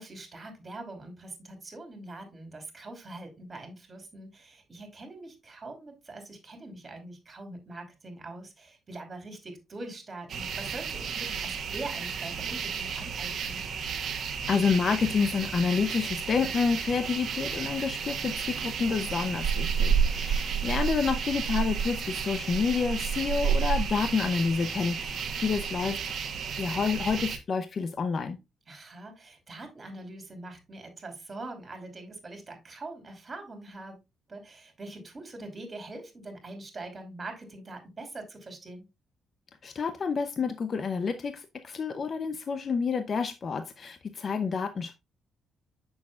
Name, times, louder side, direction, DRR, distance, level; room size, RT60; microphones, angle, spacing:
voice 1, 0.0-13.6 28.7-34.0 34.3-38.8, right 2 dB, 30° right, 2.7 m, -43 dB
sound 1, 10.3-27.4, right 7 dB, 60° right, 1.1 m, -31 dB
voice 2, 14.5-26.0 26.3-28.4 39.6-44.9, left 5 dB, 45° left, 0.6 m, -29 dB
7.4 x 6.3 x 2.4 m
cardioid pair, 90°, 0 cm